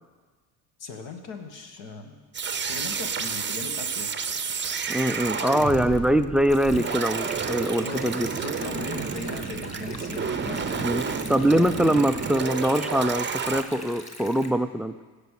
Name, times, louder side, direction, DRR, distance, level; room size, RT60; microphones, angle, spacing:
voice 1, 0.8-2.2 2.6-4.1 7.8-11.8, left 3 dB, 60° left, 4 dB, 1.8 m, -38 dB
sound 1, 2.3-13.6, right 6 dB, 20° right, 0.8 m, -30 dB
voice 2, 4.9-8.3 10.8-11.0 11.3-15.0, right 1 dB, ahead, 10 dB, 0.4 m, -23 dB
Stream, 6.5-14.5, left 1 dB, 15° left, 2.0 m, -43 dB
16.0 x 5.5 x 6.4 m, 1.4 s
hypercardioid pair, 65°, 50 cm